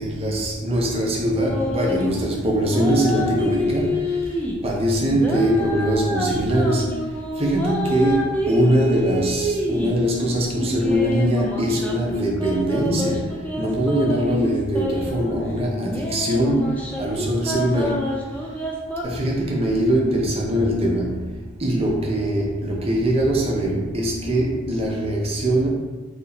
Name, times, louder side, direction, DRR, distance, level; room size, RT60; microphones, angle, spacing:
voice 1, 0.0-4.0 4.6-6.9 7.4-13.2 13.6-18.0 19.0-21.1 21.6-25.7, right 1 dB, 30° right, -2 dB, 0.6 m, -22 dB
sound 1, 1.4-2.3 2.7-4.6 5.1-10.0 10.6-15.3 15.8-19.0, equal, 5° left, 0.4 m, -27 dB
2.9 x 2.6 x 4.1 m, 1.3 s
head